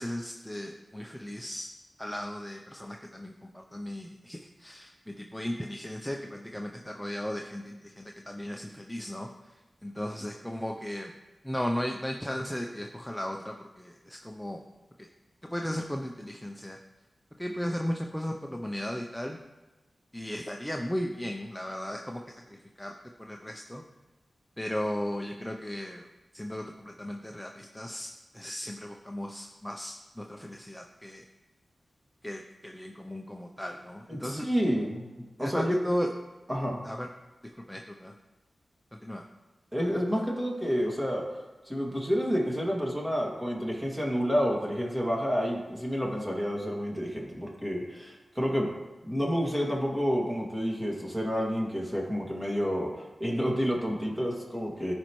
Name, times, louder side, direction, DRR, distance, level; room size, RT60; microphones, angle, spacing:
voice 1, 0.0-1.7 2.0-11.1 11.4-14.6 15.0-15.1 15.4-16.8 17.4-19.4 20.1-22.2 22.5-22.9 23.2-23.8 24.6-26.1 26.3-31.2 32.2-34.5 35.4-36.1 36.8-37.1 37.6-38.2 39.0-39.2, equal, 5° left, 2 dB, 0.6 m, -36 dB
voice 2, 34.1-35.1 35.4-35.8 36.5-36.8 39.7-48.7 49.0-54.9, equal, 15° right, -2 dB, 2.2 m, -29 dB
14.0 x 5.2 x 3.1 m, 1.1 s
wide cardioid pair, 65°, 0 cm